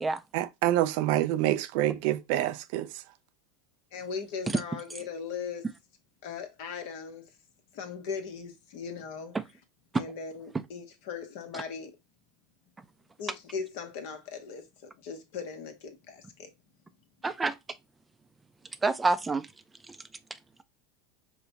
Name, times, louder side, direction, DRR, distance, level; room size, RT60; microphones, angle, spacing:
voice 1, 0.3-2.9, right 14 dB, 65° right, 0.5 m, -27 dB
voice 2, 3.9-5.7 6.2-7.2 7.7-9.4 9.9-11.9 13.2-16.5, left 5 dB, 65° left, 1.2 m, -39 dB
voice 3, 17.2-17.5 18.8-19.5 19.9-20.0, right 3 dB, 15° right, 0.5 m, -27 dB
5.1 x 2.3 x 4.1 m
hypercardioid pair, 95°, 0 cm